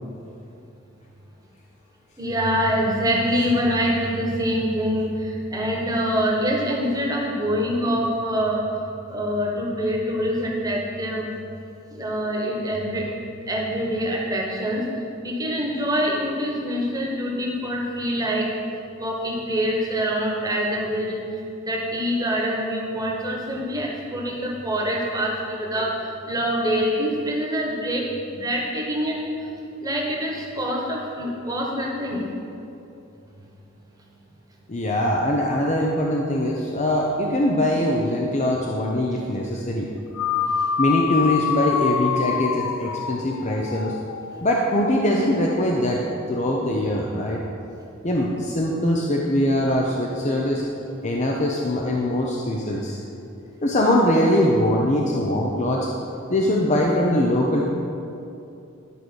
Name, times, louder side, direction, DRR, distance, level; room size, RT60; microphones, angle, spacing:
voice 1, 2.2-8.6 9.1-11.3 11.9-13.1 13.5-14.8 15.2-18.5 19.0-21.2 21.6-25.9 26.3-28.0 28.4-29.3 29.8-32.2, equal, 15° right, -2 dB, 1.3 m, -25 dB
voice 2, 34.7-39.9 40.8-44.0 44.4-47.4 48.0-50.6 51.0-53.0 53.6-55.9 56.3-57.7, left 1 dB, 35° left, -1 dB, 0.7 m, -22 dB
sound 1, 40.1-44.7, left 7 dB, 80° left, 0.4 m, -26 dB
11.0 x 4.8 x 6.3 m, 2.7 s
head